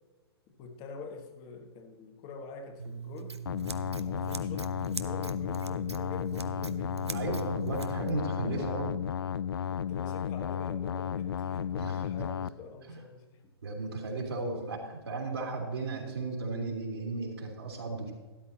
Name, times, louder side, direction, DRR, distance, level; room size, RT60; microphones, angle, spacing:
voice 1, 0.6-3.4 3.9-7.2 8.2-8.9 9.5-13.5 13.8-14.0 14.3-14.9, left 5 dB, 30° left, 6 dB, 1.4 m, -46 dB
Scissors, 2.8-8.2, right 6 dB, 85° right, 0.7 m, -41 dB
sound 1, 3.5-12.5, left 8 dB, 60° left, 0.4 m, -33 dB
voice 2, 7.1-8.9 11.8-12.0 12.9-13.0 13.6-18.1, right 3 dB, 70° right, 0 dB, 2.9 m, -35 dB
12.5 x 12.0 x 2.9 m, 1.3 s
figure-of-eight pair, 115°, 14 cm